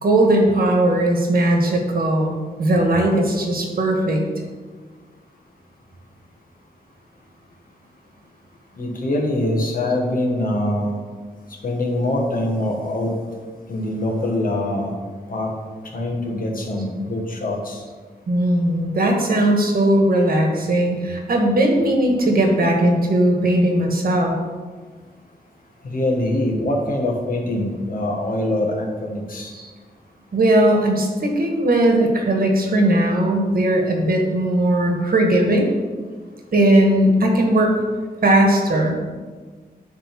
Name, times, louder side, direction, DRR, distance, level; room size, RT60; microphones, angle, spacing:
voice 1, 0.0-4.2 18.3-24.4 29.5-29.6 30.3-35.7 36.5-37.7 38.2-38.9, right 1 dB, 70° right, 1 dB, 1.6 m, -18 dB
voice 2, 8.8-11.0 11.6-13.2 13.7-14.9 15.3-15.5 15.9-17.8 25.8-29.5, left 1 dB, 60° left, 0 dB, 1.6 m, -23 dB
10.0 x 3.6 x 5.9 m, 1.5 s
wide cardioid pair, 115°, 16 cm